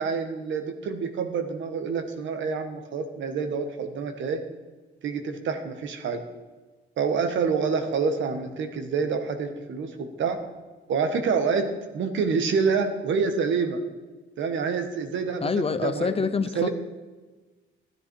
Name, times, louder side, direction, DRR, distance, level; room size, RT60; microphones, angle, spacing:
voice 1, 0.0-4.4 5.0-6.2 7.0-10.4 10.9-13.8 14.4-16.1 16.5-16.7, right 5 dB, 70° right, 7 dB, 1.5 m, -27 dB
voice 2, 15.4-16.7, left 5 dB, 30° left, 11 dB, 0.7 m, -26 dB
13.0 x 9.8 x 4.7 m, 1.3 s
cardioid pair, 90°, 20 cm